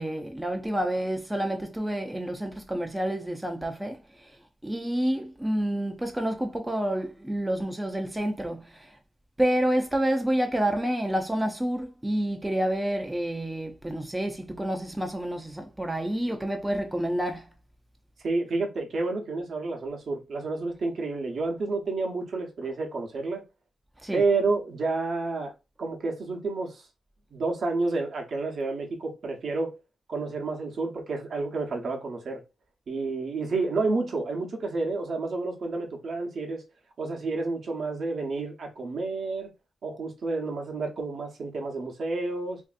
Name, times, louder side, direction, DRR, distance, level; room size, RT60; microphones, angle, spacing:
voice 1, 0.0-4.4 4.6-9.0 9.4-17.5 24.0-24.3, right 1 dB, 10° right, 0.5 m, -29 dB
voice 2, 18.2-23.4 24.1-25.5 25.8-26.9 27.3-29.7 30.1-32.4 32.9-36.6 37.0-39.5 39.8-42.6, right 3 dB, 60° right, 0.8 m, -30 dB
3.1 x 2.6 x 2.5 m
cardioid pair, 105°, 0 cm